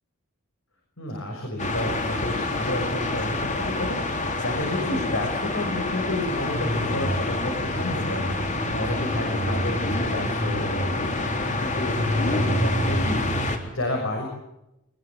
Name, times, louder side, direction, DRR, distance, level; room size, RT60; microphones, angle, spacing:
voice 1, 1.0-14.3, left 1 dB, 70° left, 2 dB, 6.2 m, -31 dB
sound 1, 1.6-13.6, left 1 dB, 35° left, 3.7 m, -26 dB
22.5 x 20.5 x 7.4 m, 0.89 s
head